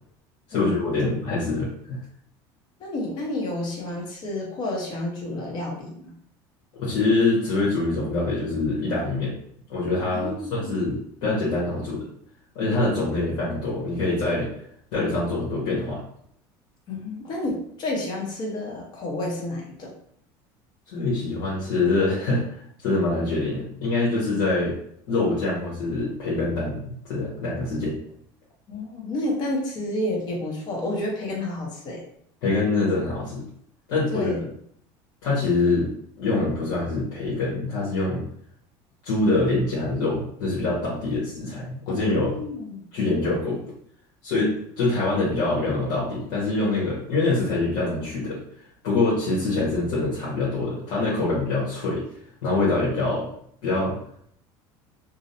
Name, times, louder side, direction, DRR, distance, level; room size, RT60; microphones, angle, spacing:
voice 1, 0.5-2.0 6.7-9.3 9.7-12.1 12.5-14.5 14.9-16.0 20.9-24.8 25.1-28.0 32.4-33.4 33.9-34.3 35.2-35.9 36.2-38.2 39.0-42.3 42.9-43.6 44.2-48.4 48.8-52.0 52.4-53.3 53.6-54.0, left 2 dB, 75° left, -8 dB, 1.0 m, -24 dB
voice 2, 2.8-6.1 10.1-10.8 16.9-19.9 28.7-32.0 34.1-34.4 41.9-42.8, left 1 dB, 45° left, -1 dB, 0.8 m, -30 dB
2.6 x 2.0 x 2.7 m, 0.67 s
cardioid pair, 140°, 10 cm